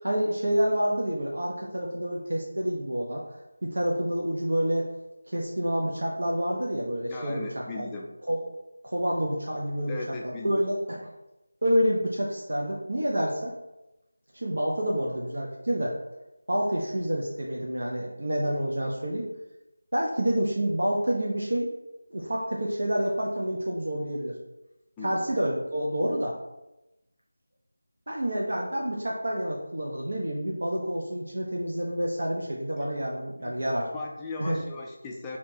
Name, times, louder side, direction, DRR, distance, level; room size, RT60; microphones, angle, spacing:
voice 1, 0.0-3.2 3.6-4.9 5.3-7.5 7.8-7.9 8.3-8.4 8.8-10.0 10.2-11.0 11.6-13.5 14.3-16.0 16.5-19.3 19.9-21.7 22.1-24.4 25.0-26.3 28.1-33.9 34.4-34.6, equal, 65° right, -2 dB, 0.8 m, -28 dB
voice 2, 7.1-8.1 9.9-10.6 25.0-25.3 32.8-32.9 33.4-33.6 33.9-35.4, left 3 dB, 10° left, -2 dB, 0.4 m, -37 dB
6.4 x 2.9 x 2.7 m, 0.96 s
figure-of-eight pair, 165°, 0 cm